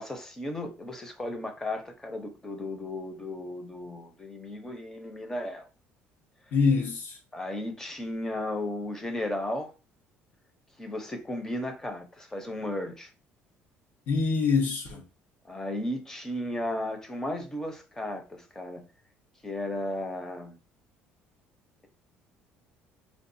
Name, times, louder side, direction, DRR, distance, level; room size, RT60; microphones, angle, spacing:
voice 1, 0.0-5.7 7.3-9.7 10.8-13.1 15.5-18.9 19.4-20.6, left 1 dB, 15° left, 0.8 m, -35 dB
voice 2, 6.5-7.2 14.1-15.0, left 4 dB, 60° left, 1.2 m, -25 dB
4.5 x 2.4 x 2.7 m
cardioid pair, 135°, 4 cm